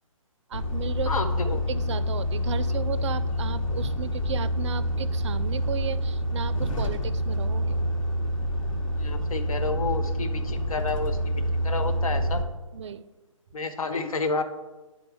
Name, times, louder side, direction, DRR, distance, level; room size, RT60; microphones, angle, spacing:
Truck, 0.5-12.4, equal, 70° left, 1.1 m, -27 dB
voice 1, 0.5-1.1 1.4-7.8 12.7-13.1, right 7 dB, 55° right, 16 dB, 0.4 m, -35 dB
voice 2, 1.1-1.6 9.0-12.4 13.5-14.4, left 3 dB, 85° left, 8 dB, 0.8 m, -30 dB
9.9 x 3.7 x 3.4 m, 1.2 s
hypercardioid pair, 150°, 18 cm